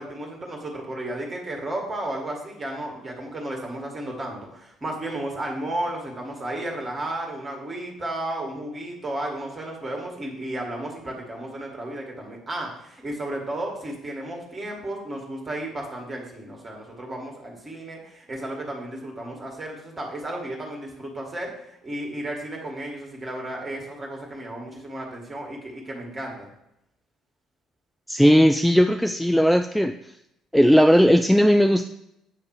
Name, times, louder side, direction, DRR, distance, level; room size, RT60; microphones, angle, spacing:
voice 1, 0.0-21.5 21.8-26.5, right 1 dB, 30° right, 0 dB, 1.9 m, -33 dB
voice 2, 28.1-29.9 30.5-31.9, equal, ahead, 7 dB, 0.3 m, -17 dB
8.3 x 3.2 x 4.9 m, 0.81 s
figure-of-eight pair, 50°, 0 cm